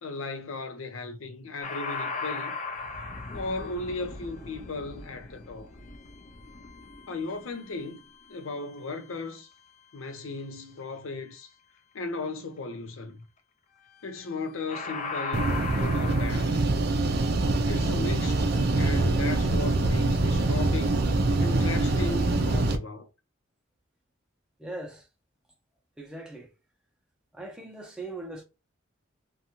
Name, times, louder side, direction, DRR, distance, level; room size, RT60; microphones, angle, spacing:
voice 1, 0.0-2.6 3.3-5.7 7.1-8.0 8.3-9.5 9.9-11.5 11.9-13.3 14.0-16.8 17.6-18.5 18.7-21.0 21.4-23.1, left 3 dB, 80° left, 0.6 m, -36 dB
sound 1, 1.6-8.8 14.0-14.3 14.7-16.4, left 4 dB, 35° left, 0.5 m, -38 dB
sound 2, 15.3-22.8, right 2 dB, 50° right, 0.4 m, -24 dB
voice 2, 24.6-25.1 26.0-26.5 27.3-28.4, right 2 dB, 5° right, 0.6 m, -40 dB
2.6 x 2.2 x 2.9 m
head